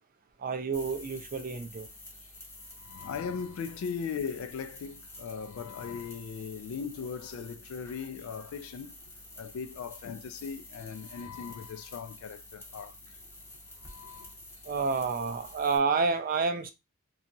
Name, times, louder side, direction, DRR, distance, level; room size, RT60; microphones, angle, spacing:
voice 1, 0.4-1.9 14.7-16.7, right 4 dB, 40° right, 0.4 m, -29 dB
sound 1, 0.7-15.8, left 2 dB, 10° left, 0.6 m, -49 dB
voice 2, 2.7-9.1 9.4-13.2 13.8-14.4, left 6 dB, 65° left, 0.3 m, -39 dB
2.8 x 2.3 x 2.6 m
head